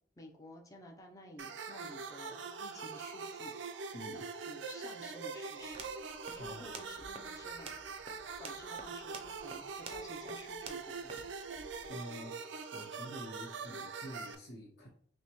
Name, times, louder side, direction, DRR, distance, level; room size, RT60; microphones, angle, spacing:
voice 1, 0.2-5.9 6.3-7.8 8.4-11.3, left 1 dB, 20° left, 1 dB, 0.6 m, -53 dB
sound 1, 1.4-14.3, right 5 dB, 85° right, 0.4 m, -43 dB
voice 2, 3.9-4.2 6.3-6.8 11.9-12.4 12.7-14.9, equal, 80° left, -5 dB, 1.0 m, -47 dB
sound 2, 5.6-11.9, right 3 dB, 30° right, 0.5 m, -52 dB
5.8 x 2.1 x 3.0 m, 0.62 s
head